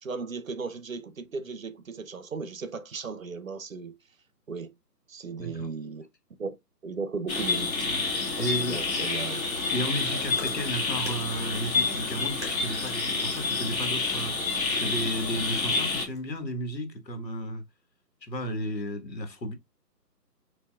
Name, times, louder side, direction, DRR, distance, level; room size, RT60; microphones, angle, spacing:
voice 1, 0.0-4.0 4.5-4.7 5.1-6.1 6.4-6.6 6.8-7.9 8.4-9.4, right 4 dB, 55° right, 0.7 m, -36 dB
voice 2, 5.4-5.7 8.4-9.1 9.7-14.4 14.7-17.6 18.2-19.5, equal, 80° left, 1.7 m, -33 dB
sound 1, 7.3-16.1, left 4 dB, 55° left, 2.0 m, -29 dB
Chewing mastication, 10.2-16.4, equal, 15° right, 0.8 m, -46 dB
6.9 x 2.8 x 2.3 m
hypercardioid pair, 165°, 49 cm